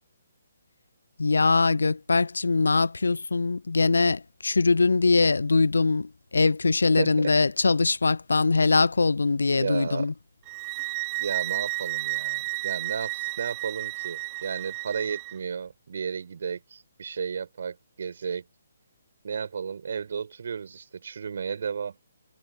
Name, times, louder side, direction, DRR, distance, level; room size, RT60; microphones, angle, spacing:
voice 1, 1.2-10.1, left 3 dB, 70° left, 0.4 m, -22 dB
voice 2, 7.0-7.3 9.5-10.1 11.2-18.5 19.2-22.0, right 6 dB, 55° right, 3.5 m, -33 dB
sound 1, 10.5-15.4, right 33 dB, 25° right, 0.5 m, -32 dB
figure-of-eight pair, 140°, 0 cm